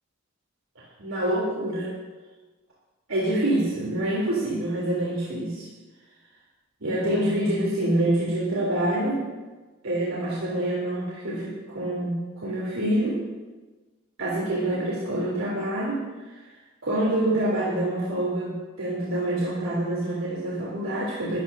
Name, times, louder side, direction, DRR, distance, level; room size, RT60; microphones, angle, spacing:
voice 1, 0.7-1.9 3.1-5.7 6.8-9.2 9.8-13.2 14.2-16.0 16.8-21.4, right 1 dB, 80° right, -6 dB, 3.4 m, -26 dB
21.5 x 14.0 x 2.8 m, 1.2 s
head